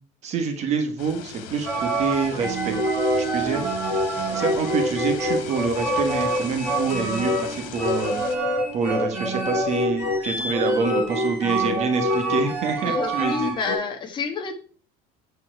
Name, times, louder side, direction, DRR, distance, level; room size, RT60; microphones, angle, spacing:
voice 1, 0.2-2.8 3.2-3.6 4.3-13.5, right 5 dB, 35° right, 6 dB, 1.4 m, -27 dB
sound 1, 1.0-8.4, left 8 dB, 90° left, 2.1 m, -39 dB
sound 2, 1.6-13.7, equal, 10° right, 5.8 m, -25 dB
voice 2, 3.4-3.8 12.8-14.6, left 5 dB, 25° left, 4 dB, 1.6 m, -30 dB
8.9 x 7.2 x 4.6 m, 0.42 s
cardioid pair, 180°, 19 cm